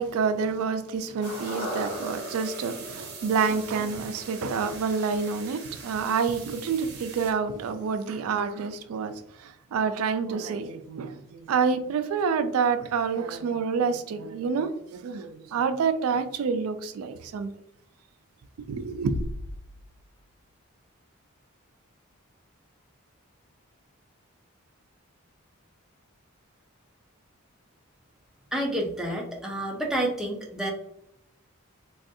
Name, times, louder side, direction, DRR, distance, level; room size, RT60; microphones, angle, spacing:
voice 1, 0.0-17.5 18.7-19.2, right 5 dB, 85° right, 0.3 m, -28 dB
sound 1, 1.2-5.5 5.8-5.9, equal, 50° left, 1.3 m, -39 dB
sound 2, 1.2-7.3, right 6 dB, 50° right, 0.7 m, -43 dB
sound 3, 19.1-20.5, left 1 dB, 80° left, 0.3 m, -37 dB
voice 2, 28.5-30.7, right 1 dB, 5° right, 0.4 m, -29 dB
3.4 x 2.3 x 2.5 m
head